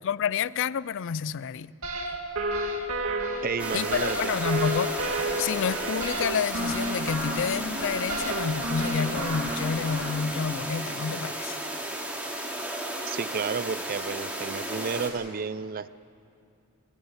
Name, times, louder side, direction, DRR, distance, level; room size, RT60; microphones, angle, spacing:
voice 1, 0.0-1.7 3.7-4.9 5.4-11.6, left 6 dB, 55° left, 0.4 m, -29 dB
sound 1, 1.8-10.2, right 1 dB, 70° right, 2.6 m, -31 dB
voice 2, 3.4-4.4 13.1-15.9, right 5 dB, 40° right, 0.5 m, -32 dB
sound 2, 3.6-15.1, right 1 dB, 5° right, 2.5 m, -34 dB
22.5 x 15.0 x 8.0 m
head